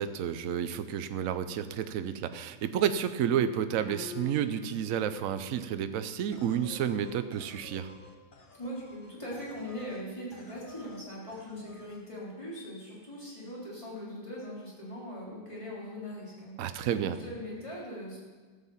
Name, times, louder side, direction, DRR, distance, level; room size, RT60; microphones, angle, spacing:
voice 1, 0.0-7.9 16.6-17.2, right 9 dB, 75° right, 11 dB, 0.7 m, -30 dB
sound 1, 3.8-4.8, left 6 dB, 80° left, 2.7 m, -44 dB
sound 2, 6.3-10.1 10.3-11.0 11.3-12.0, left 3 dB, 40° left, 0.8 m, -53 dB
voice 2, 8.6-18.2, equal, 15° left, -6 dB, 3.6 m, -41 dB
13.5 x 7.3 x 7.1 m, 1.4 s
omnidirectional pair, 2.2 m